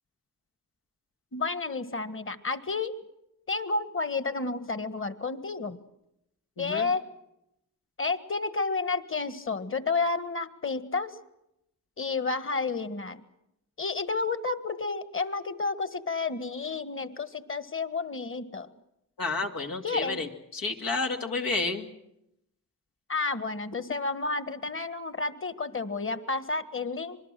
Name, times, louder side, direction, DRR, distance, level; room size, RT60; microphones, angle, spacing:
voice 1, 1.3-3.0 3.5-5.8 6.6-7.0 8.0-11.1 12.0-13.2 13.8-18.7 19.8-20.2 23.1-27.2, left 4 dB, 35° left, 13 dB, 1.6 m, -31 dB
voice 2, 6.6-6.9 19.2-21.9, left 3 dB, 90° left, 3 dB, 2.5 m, -31 dB
26.0 x 20.5 x 7.6 m, 0.83 s
cardioid pair, 60°, 34 cm